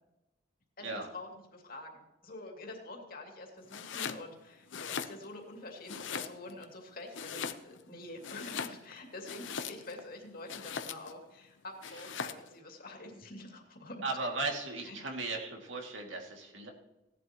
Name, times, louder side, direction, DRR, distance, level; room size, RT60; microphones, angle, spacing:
voice 1, 0.8-14.0 14.8-15.0, left 2 dB, 50° left, 1 dB, 2.5 m, -47 dB
Domestic sounds home sounds, 3.7-4.2 4.6-5.5 5.9-6.7 7.1-7.9 8.2-10.0 10.5-11.2 11.8-12.5, left 7 dB, 75° left, 0.8 m, -40 dB
voice 2, 14.0-16.7, right 3 dB, 75° right, 2 dB, 2.3 m, -36 dB
17.0 x 11.0 x 3.0 m, 0.96 s
head